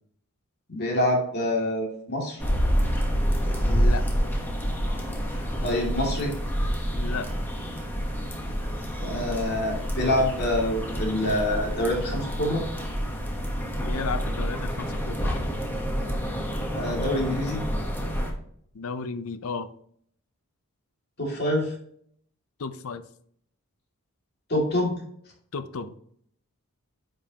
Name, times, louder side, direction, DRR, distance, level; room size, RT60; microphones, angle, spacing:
voice 1, 0.7-2.4 5.6-6.4 9.0-12.6 16.7-17.6 21.2-21.7 24.5-25.0, left 1 dB, 45° left, -2 dB, 2.4 m, -26 dB
sound 1, 2.4-18.3, equal, 10° left, 1.1 m, -28 dB
voice 2, 3.7-4.0 6.9-7.3 13.8-15.4 18.7-19.7 22.6-23.0 25.5-25.9, left 4 dB, 70° left, 12 dB, 0.6 m, -33 dB
8.7 x 5.3 x 2.9 m, 0.66 s
head